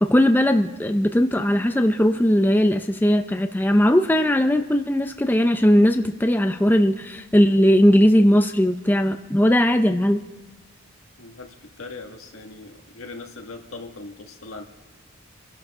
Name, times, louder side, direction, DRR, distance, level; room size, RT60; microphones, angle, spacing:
voice 1, 0.0-10.2, equal, 10° left, 7 dB, 0.4 m, -18 dB
voice 2, 11.2-14.6, left 3 dB, 85° left, 3 dB, 1.7 m, -40 dB
29.0 x 11.5 x 3.6 m, 1.2 s
head